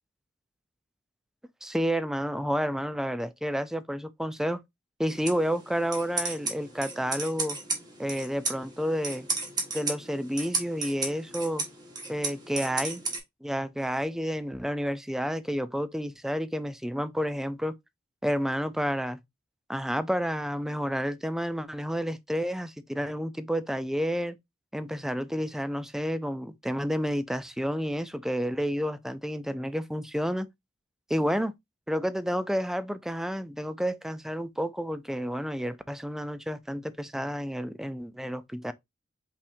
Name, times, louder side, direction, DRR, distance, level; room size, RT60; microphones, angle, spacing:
voice 1, 1.6-4.6 5.0-7.6 8.0-9.3 9.7-11.7 12.1-13.0 13.4-17.7 18.2-19.2 19.7-24.4 24.7-30.5 31.1-31.5 31.9-38.7, equal, ahead, 0.3 m, -30 dB
sound 1, 5.1-13.2, right 3 dB, 20° right, 1.4 m, -34 dB
5.5 x 3.5 x 2.5 m
head